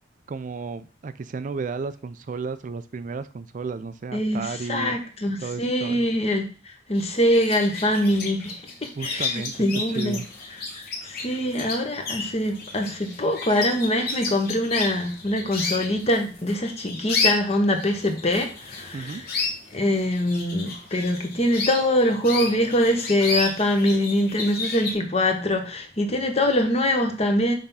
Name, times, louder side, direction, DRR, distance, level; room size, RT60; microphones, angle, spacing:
voice 1, 0.3-5.0 5.4-6.1 9.0-9.5 9.9-10.3 18.9-19.2, right 4 dB, 45° right, 0.4 m, -33 dB
voice 2, 4.1-10.2 10.7-19.4 19.7-27.6, left 1 dB, 35° left, 1.1 m, -24 dB
sound 1, 7.0-24.9, left 4 dB, 50° left, 1.4 m, -32 dB
6.3 x 3.5 x 5.5 m
head